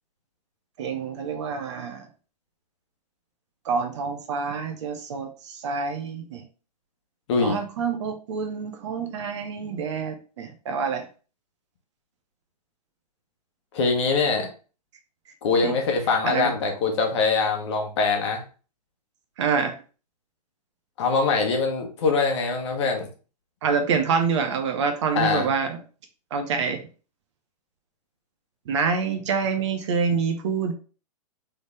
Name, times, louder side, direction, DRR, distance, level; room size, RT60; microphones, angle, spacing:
voice 1, 0.8-2.1 3.6-6.4 7.4-11.0 15.6-15.7 16.2-16.5 19.4-19.8 23.6-25.8 26.3-26.8 28.7-30.7, right 5 dB, 45° right, 5 dB, 0.8 m, -26 dB
voice 2, 13.7-14.5 15.4-18.4 21.0-23.1 25.1-25.5, left 4 dB, 45° left, 3 dB, 1.1 m, -23 dB
3.9 x 3.4 x 3.3 m, 0.36 s
figure-of-eight pair, 120°, 21 cm